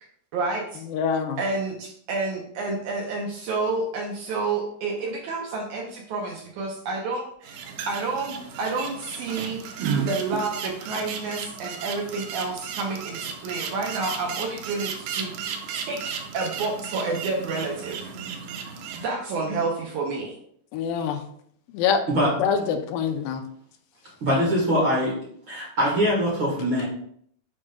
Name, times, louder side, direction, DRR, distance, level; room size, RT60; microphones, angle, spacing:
voice 1, 0.3-0.8 1.4-15.3 15.9-16.0 16.3-18.1 19.0-20.3, right 3 dB, 75° right, 1.9 m, -29 dB
voice 2, 0.9-1.4 20.7-21.2 21.7-22.0 22.4-23.4, left 7 dB, 85° left, 2.3 m, -24 dB
sound 1, 7.4-19.0, right 6 dB, 90° right, 2.4 m, -34 dB
voice 3, 24.2-25.2 25.5-26.8, equal, 50° right, 1.5 m, -22 dB
8.5 x 4.9 x 2.2 m
omnidirectional pair, 4.0 m